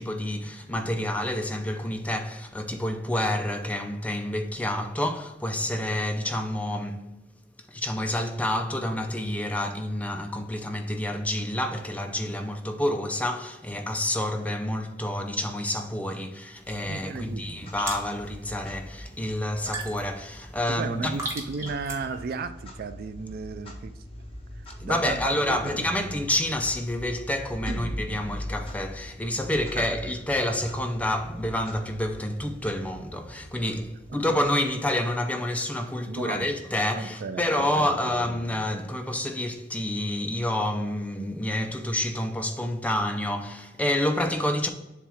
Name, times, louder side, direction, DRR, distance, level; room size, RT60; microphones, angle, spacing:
voice 1, 0.0-7.0 7.7-21.2 24.8-44.7, left 1 dB, 10° left, 0.5 m, -28 dB
Clock, 16.6-35.3, left 1 dB, 30° left, 1.2 m, -42 dB
sound 1, 16.6-22.3, right 2 dB, 15° right, 1.2 m, -40 dB
voice 2, 16.8-17.7 20.7-23.9 24.5-25.9 27.7-28.2 29.8-29.9 34.1-34.2 36.1-36.5 36.9-38.4, right 4 dB, 55° right, 0.3 m, -35 dB
7.1 x 2.4 x 5.6 m
head